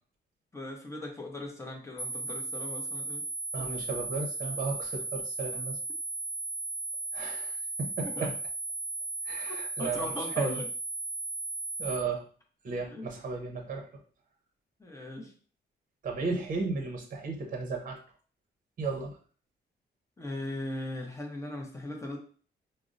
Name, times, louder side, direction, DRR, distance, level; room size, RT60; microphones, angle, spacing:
voice 1, 0.5-3.3 3.6-3.7 8.0-8.3 9.5-10.7 12.9-13.1 14.8-15.3 20.2-22.2, left 1 dB, 15° left, 1 dB, 0.6 m, -38 dB
sound 1, 2.0-12.0, right 3 dB, 60° left, 0.7 m, -36 dB
voice 2, 3.5-5.8 7.1-8.3 9.3-10.6 11.8-12.3 12.6-13.9 16.0-18.0 18.8-19.2, right 4 dB, 45° right, 2 dB, 0.7 m, -34 dB
4.9 x 2.0 x 2.5 m, 0.43 s
wide cardioid pair, 160°, 19 cm